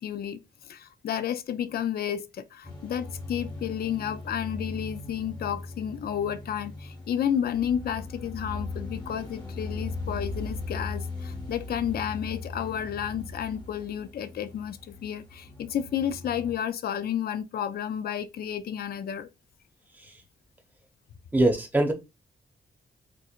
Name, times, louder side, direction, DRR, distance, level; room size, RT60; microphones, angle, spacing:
voice 1, 0.0-19.3, left 9 dB, 60° left, 0.4 m, -31 dB
sound 1, 2.6-16.5, left 3 dB, 25° left, 1.4 m, -39 dB
voice 2, 21.3-21.9, right 1 dB, 10° right, 0.9 m, -22 dB
4.5 x 2.5 x 2.4 m
cardioid pair, 95°, 18 cm